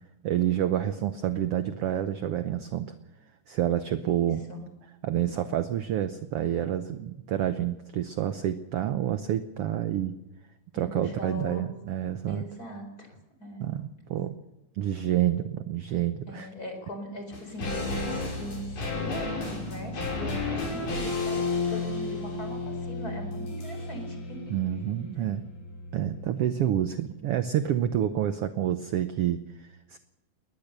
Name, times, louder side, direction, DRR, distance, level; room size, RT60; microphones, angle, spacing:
voice 1, 0.2-2.9 3.5-4.4 5.0-10.2 10.7-12.4 13.6-14.4 14.7-16.5 24.5-25.5 25.9-30.0, right 11 dB, 70° right, 10 dB, 1.4 m, -28 dB
voice 2, 4.0-4.6 10.7-11.6 12.3-13.6 16.3-24.5, equal, 25° left, 5 dB, 4.8 m, -40 dB
sound 1, 17.3-26.7 26.9-27.0, left 3 dB, 85° left, 7.7 m, -33 dB
20.5 x 20.0 x 6.8 m, 0.97 s
omnidirectional pair, 3.6 m